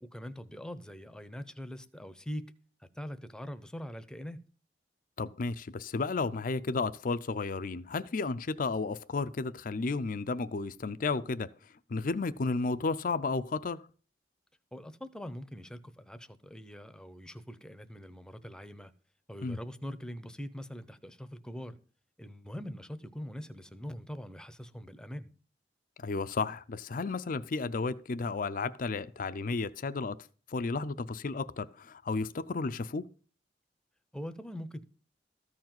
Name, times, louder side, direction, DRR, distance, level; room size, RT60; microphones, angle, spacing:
voice 1, 0.0-2.5 2.9-4.4 14.7-18.9 19.3-21.8 22.2-25.3 34.1-34.8, equal, 5° left, 0.7 m, -43 dB
voice 2, 5.2-11.5 11.9-13.8 19.4-19.6 26.0-30.2 30.5-33.1, left 3 dB, 50° left, 0.5 m, -33 dB
14.0 x 4.8 x 7.7 m
head